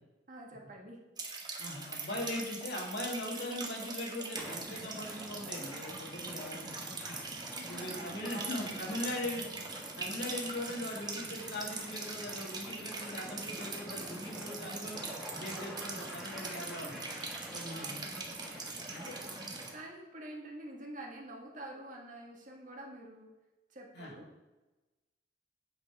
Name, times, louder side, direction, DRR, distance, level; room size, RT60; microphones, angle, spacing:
voice 1, 0.3-1.0 7.5-8.8 17.4-18.3 18.9-19.3 19.7-23.3 23.7-24.3, right 1 dB, 50° right, 0 dB, 1.6 m, -47 dB
sound 1, 1.2-19.7, right 4 dB, 25° right, 1.2 m, -42 dB
voice 2, 1.6-6.7 7.1-7.2 7.6-9.5 10.0-15.0 15.3-18.0 18.9-19.5 23.9-24.1, left 1 dB, 70° left, -2 dB, 2.2 m, -40 dB
sound 2, 4.4-19.8, equal, ahead, 1.7 m, -47 dB
8.6 x 5.9 x 4.8 m, 1.1 s
head